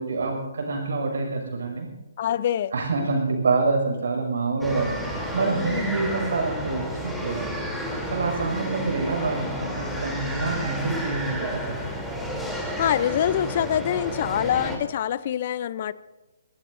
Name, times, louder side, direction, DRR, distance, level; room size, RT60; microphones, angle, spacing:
voice 1, 0.0-1.9 2.7-7.6 8.0-11.9, right 3 dB, 65° right, 2 dB, 6.5 m, -27 dB
voice 2, 2.2-2.7 5.5-6.0 12.8-15.9, left 10 dB, 45° left, 17 dB, 0.7 m, -25 dB
sound 1, 4.6-14.8, equal, ahead, 3.5 m, -31 dB
24.0 x 19.0 x 2.8 m, 1.1 s
figure-of-eight pair, 140°, 0 cm